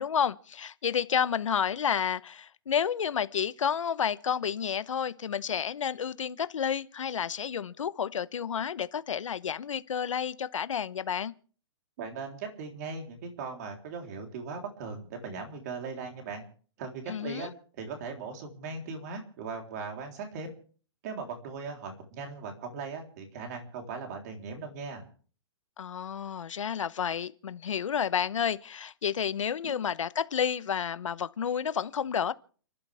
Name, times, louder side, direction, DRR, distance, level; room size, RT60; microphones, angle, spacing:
voice 1, 0.0-11.3 17.1-17.5 25.8-32.3, left 8 dB, 80° left, 1.0 m, -30 dB
voice 2, 12.0-16.4 16.8-17.5 17.8-20.5 21.0-25.0 29.6-29.7, right 4 dB, 35° right, 3.7 m, -39 dB
30.0 x 12.0 x 3.5 m
hypercardioid pair, 165°, 16 cm